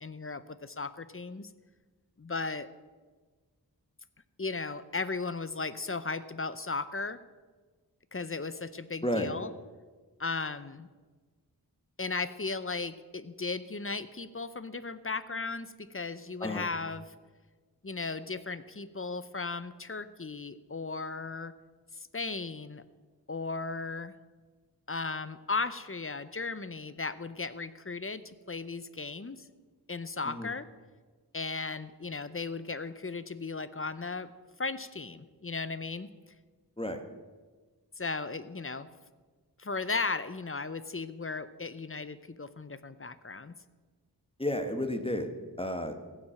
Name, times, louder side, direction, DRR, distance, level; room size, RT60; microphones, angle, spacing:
voice 1, 0.0-1.5 2.2-2.7 4.4-7.2 8.1-9.5 10.2-10.9 12.0-17.1 17.8-21.5 22.1-22.8 23.3-24.1 24.9-29.5 29.9-30.7 31.3-34.3 34.6-36.1 38.0-38.9 39.6-43.5, left 4 dB, 35° left, 14 dB, 0.7 m, -36 dB
voice 2, 9.0-9.3 16.4-16.7 30.2-30.5 36.8-37.0 44.4-45.3 45.6-46.0, left 1 dB, 15° left, 7 dB, 1.3 m, -32 dB
15.5 x 7.3 x 6.5 m, 1.4 s
wide cardioid pair, 45°, 40 cm